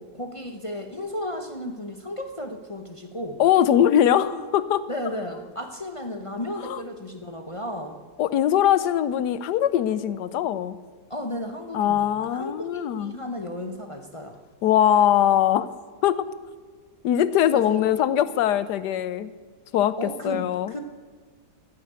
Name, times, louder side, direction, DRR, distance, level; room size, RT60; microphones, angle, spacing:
voice 1, 0.0-3.4 4.9-8.0 11.1-14.4 17.5-17.8 20.0-20.8, left 1 dB, 30° left, 4 dB, 0.6 m, -34 dB
voice 2, 3.4-4.8 6.6-6.8 8.2-10.8 11.7-13.2 14.6-15.7 16.0-16.3 17.0-19.3 19.7-20.7, left 10 dB, 75° left, 15 dB, 1.2 m, -21 dB
13.0 x 9.4 x 8.2 m, 1.5 s
omnidirectional pair, 1.8 m